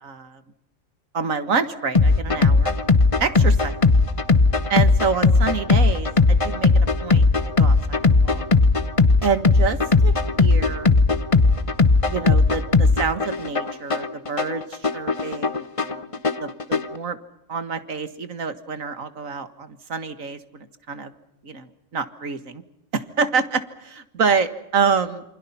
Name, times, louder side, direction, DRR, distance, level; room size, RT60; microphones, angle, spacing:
voice 1, 0.0-0.4 1.1-2.8 3.2-3.8 4.7-7.2 7.6-8.4 9.2-10.9 12.0-17.2 17.5-21.1 21.4-22.6 22.9-25.2, right 5 dB, 85° right, 11 dB, 2.1 m, -27 dB
sound 1, 1.9-17.0, left 3 dB, 30° left, 0.9 m, -18 dB
28.0 x 26.0 x 5.7 m, 0.86 s
omnidirectional pair, 1.4 m